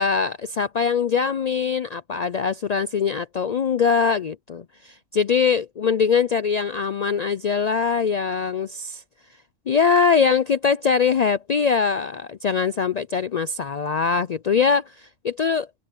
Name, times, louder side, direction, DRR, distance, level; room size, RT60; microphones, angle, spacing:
voice 1, 0.0-9.0 9.7-15.7, left 6 dB, 90° left, 0.3 m, -22 dB
open air
omnidirectional pair, 1.3 m